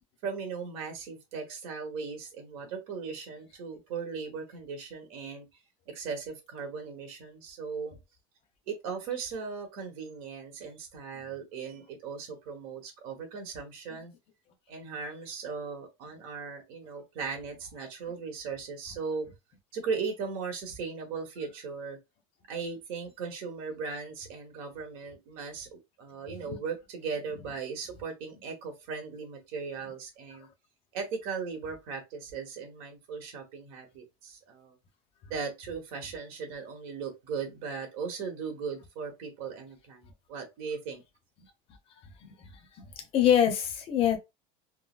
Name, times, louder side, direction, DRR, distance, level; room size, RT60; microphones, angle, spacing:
voice 1, 0.2-5.5 5.9-8.0 8.7-14.1 14.7-19.3 19.7-22.0 22.5-30.5 30.9-34.7 35.3-41.0, right 5 dB, 65° right, 1.4 m, -38 dB
voice 2, 42.8-44.2, left 9 dB, 30° left, 0.7 m, -25 dB
3.8 x 2.1 x 2.5 m
cardioid pair, 160°, 18 cm